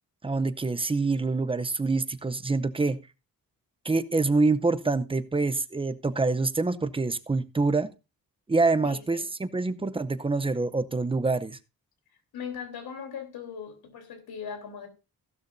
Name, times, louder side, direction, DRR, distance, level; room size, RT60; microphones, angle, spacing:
voice 1, 0.2-3.0 3.8-7.9 8.5-11.6, right 3 dB, 15° right, 0.6 m, -26 dB
voice 2, 8.8-9.2 12.3-14.9, left 7 dB, 85° left, 3.5 m, -39 dB
15.5 x 12.0 x 2.6 m
wide cardioid pair, 145°, 36 cm